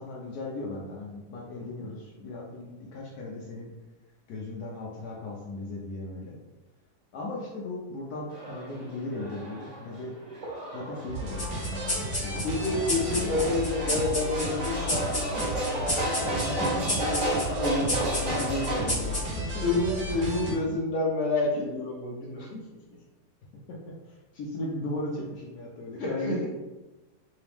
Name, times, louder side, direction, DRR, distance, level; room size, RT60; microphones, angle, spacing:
voice 1, 0.0-3.7 4.3-6.4 7.1-10.1 10.7-12.5 13.1-13.4 16.4-19.6 23.7-23.8 24.1-26.5, left 2 dB, 70° left, -4 dB, 1.1 m, -36 dB
voice 2, 1.6-1.9 12.4-16.5 18.8-22.7 26.0-26.5, left 2 dB, 45° left, -4 dB, 1.1 m, -30 dB
sound 1, 8.3-18.9, right 1 dB, 55° right, 1.8 m, -33 dB
sound 2, 11.1-20.5, right 1 dB, 85° right, 1.5 m, -34 dB
sound 3, 11.4-20.3, left 1 dB, 30° left, 1.5 m, -34 dB
3.6 x 3.3 x 2.9 m, 1.1 s
omnidirectional pair, 1.8 m